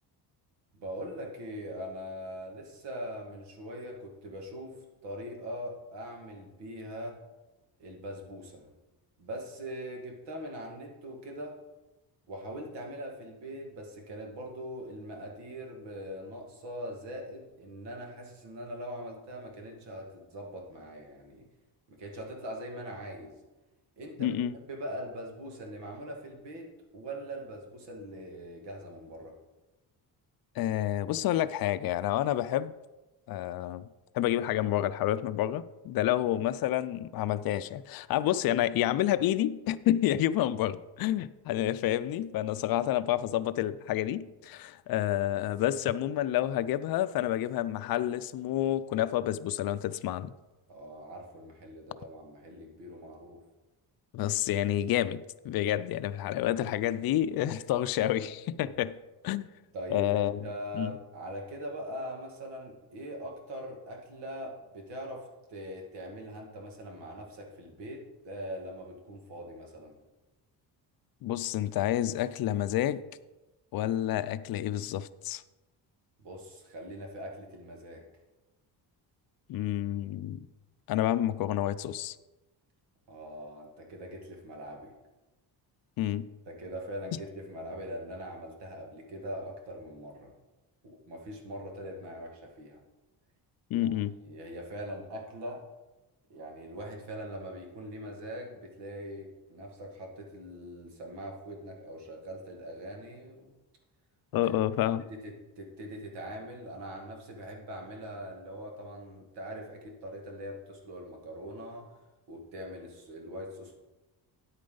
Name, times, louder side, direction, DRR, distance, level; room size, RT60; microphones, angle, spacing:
voice 1, 0.7-7.2 7.8-8.7 9.2-11.6 12.3-21.5 21.9-23.4 24.0-24.4 24.7-26.7 26.9-29.3 50.7-53.4 59.7-69.9 76.2-78.0 83.1-84.9 86.5-90.3 90.8-92.8 93.7-93.9 94.2-95.6 96.3-103.5 104.3-104.4 105.1-111.9 112.3-113.7, equal, 85° right, 2.1 m, -42 dB
voice 2, 24.2-24.6 30.6-32.7 33.3-33.9 34.1-50.3 54.1-59.0 59.2-59.5 59.9-60.4 60.7-60.9 71.2-73.0 73.7-75.4 79.5-80.4 80.9-82.2 86.0-86.3 93.7-94.2 104.3-105.0, left 12 dB, 60° left, 0.5 m, -29 dB
9.7 x 8.7 x 3.9 m
cardioid pair, 120°, 40 cm